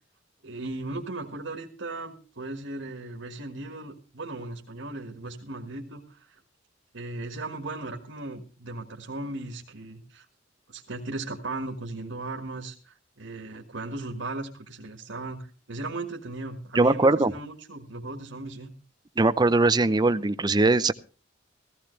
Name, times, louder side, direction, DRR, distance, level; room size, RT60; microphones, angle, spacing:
voice 1, 0.4-6.2 6.9-10.2 10.7-18.7, right 2 dB, 85° right, 3 dB, 1.7 m, -37 dB
voice 2, 16.7-17.3 19.2-20.9, right 2 dB, 20° right, 14 dB, 0.5 m, -21 dB
16.0 x 15.0 x 3.2 m, 0.35 s
head